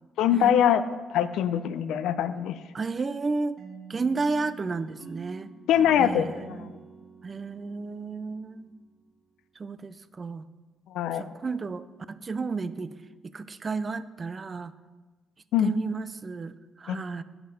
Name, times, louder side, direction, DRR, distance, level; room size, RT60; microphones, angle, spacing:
voice 1, 0.2-0.8 1.1-2.6 5.7-6.7 10.9-11.3 15.5-15.7 16.9-17.0, left 9 dB, 85° left, 12 dB, 0.5 m, -23 dB
voice 2, 2.7-3.6 3.9-5.5 6.0-6.7 7.2-8.7 9.6-10.5 11.1-12.9 13.3-14.7 15.6-17.2, right 4 dB, 35° right, 14 dB, 0.5 m, -32 dB
sound 1, 3.6-8.7, right 5 dB, 55° right, 1.6 m, -47 dB
9.1 x 7.9 x 5.1 m, 1.3 s
cardioid pair, 90°, 0 cm